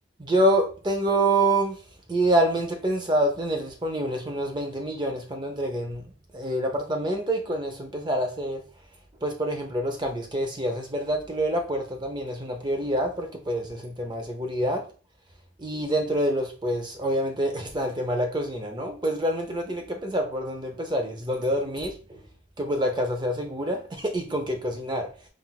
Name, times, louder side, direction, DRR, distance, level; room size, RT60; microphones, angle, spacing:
voice 1, 0.2-1.8 2.1-6.0 6.3-8.6 9.2-14.8 15.6-22.2 22.6-25.1, right 1 dB, 20° right, 0.6 m, -26 dB
5.7 x 2.5 x 2.3 m
head